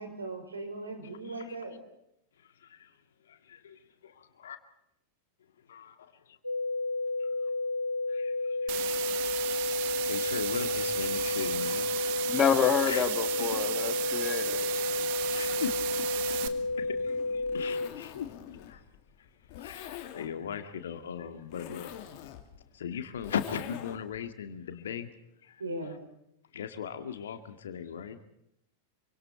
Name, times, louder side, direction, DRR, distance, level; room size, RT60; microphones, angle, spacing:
voice 1, 0.0-1.8 25.6-26.0, right 2 dB, 75° right, 6 dB, 5.7 m, -38 dB
voice 2, 3.3-4.6 5.7-6.0 6.3-6.4 7.2-7.5 8.1-9.3 10.1-12.2 12.9-13.1 13.5-13.9 14.7-14.9 15.3-15.9 16.2-16.5 16.8-18.3 18.7-18.8 19.6-21.9 22.7-25.1 25.4-25.6 26.5-28.2, left 8 dB, 65° left, 8 dB, 2.2 m, -39 dB
sound 1, 6.4-17.9, left 3 dB, 85° left, 1.1 m, -31 dB
sound 2, 8.7-16.5, right 14 dB, 50° right, 1.6 m, -34 dB
voice 3, 12.3-14.7, left 8 dB, 25° left, 10 dB, 1.9 m, -28 dB
Zipper (clothing), 16.3-24.2, left 11 dB, 45° left, 2.9 m, -46 dB
27.0 x 25.0 x 4.5 m, 0.80 s
figure-of-eight pair, 90°, 0 cm